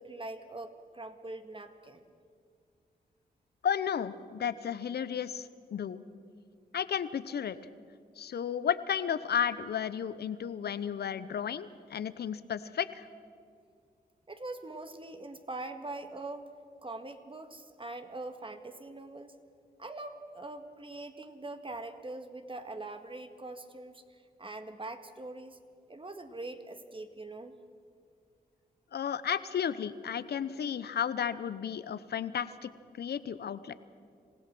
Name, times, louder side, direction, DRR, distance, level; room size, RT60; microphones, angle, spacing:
voice 1, 0.0-2.0 14.3-16.5 16.8-19.4 19.8-25.6 25.9-27.6, right 2 dB, 30° right, 8 dB, 1.8 m, -43 dB
voice 2, 3.6-6.0 6.7-7.6 8.2-13.1 28.9-32.7 33.0-33.7, left 8 dB, 70° left, 15 dB, 0.8 m, -33 dB
26.5 x 16.5 x 6.1 m, 2.2 s
cardioid pair, 50°, 17 cm